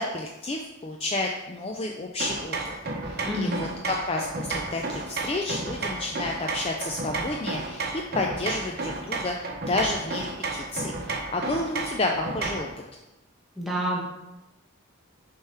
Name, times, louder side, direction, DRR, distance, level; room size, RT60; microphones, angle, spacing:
voice 1, 0.0-2.7 3.0-7.9 8.2-9.3 9.7-12.7, left 2 dB, 25° left, 1 dB, 0.3 m, -30 dB
sound 1, 2.2-12.7, right 3 dB, 45° right, 0.8 m, -32 dB
voice 2, 3.2-3.6 13.6-14.0, equal, ahead, -4 dB, 1.0 m, -28 dB
6.5 x 3.5 x 4.3 m, 0.97 s
head